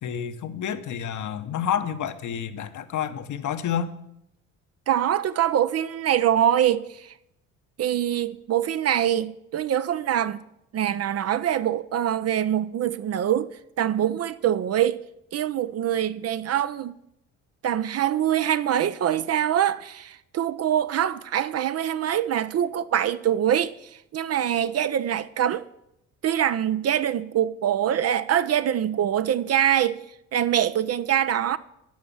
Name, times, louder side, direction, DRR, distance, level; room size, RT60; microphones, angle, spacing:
voice 1, 0.0-3.9, left 8 dB, 50° left, 0.9 m, -29 dB
voice 2, 4.9-7.1 7.8-10.5 10.7-15.0 15.3-16.9 17.6-25.7 26.2-30.0 30.3-31.6, right 10 dB, 40° right, 0.5 m, -24 dB
10.5 x 5.9 x 7.1 m
hypercardioid pair, 55°, 39 cm